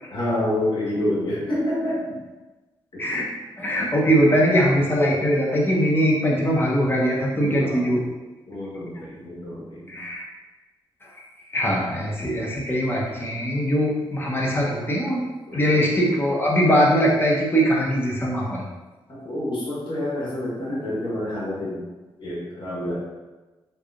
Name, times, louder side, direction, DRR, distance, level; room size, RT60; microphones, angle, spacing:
voice 1, 0.1-2.2 2.9-3.0 7.3-7.9 8.5-10.0 15.5-15.8 19.1-21.8 22.2-23.0, left 1 dB, 60° left, -7 dB, 1.5 m, -28 dB
voice 2, 3.6-8.0 9.9-10.2 11.2-11.3 11.5-15.2 15.5-18.6, equal, 25° left, -3 dB, 0.9 m, -21 dB
3.4 x 3.3 x 2.5 m, 1.2 s
cardioid pair, 85°, 9 cm